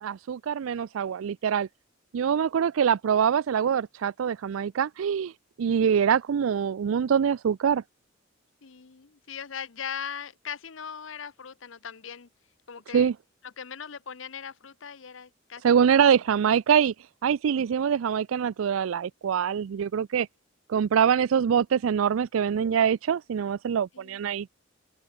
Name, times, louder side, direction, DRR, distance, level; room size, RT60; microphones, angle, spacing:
voice 1, 0.0-1.7 2.1-5.3 5.6-7.8 12.9-13.1 15.6-16.9 17.2-20.3 20.7-24.5, right 7 dB, 90° right, 0.4 m, -24 dB
voice 2, 8.6-12.3 12.7-13.1 13.4-15.6 15.9-16.1 23.9-24.2, left 7 dB, 70° left, 0.9 m, -39 dB
open air
head